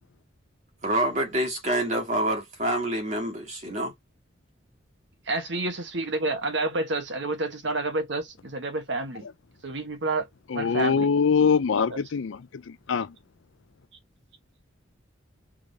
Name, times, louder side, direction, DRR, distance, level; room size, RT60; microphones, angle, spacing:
voice 1, 0.8-3.9, right 1 dB, 35° right, 1.7 m, -27 dB
voice 2, 5.3-9.3 9.6-10.3 10.5-11.1 11.9-12.0, right 2 dB, 65° right, 1.2 m, -29 dB
voice 3, 10.5-12.4 12.7-13.1, left 5 dB, 80° left, 0.5 m, -23 dB
3.7 x 3.3 x 3.9 m
head